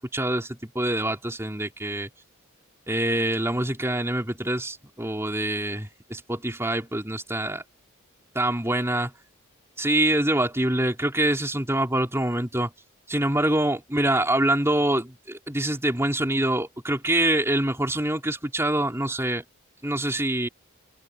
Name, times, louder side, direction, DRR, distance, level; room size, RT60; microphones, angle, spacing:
voice 1, 0.0-2.1 2.9-7.6 8.3-9.1 9.8-12.7 13.1-19.4 19.8-20.5, right 1 dB, 10° right, 4.1 m, -25 dB
head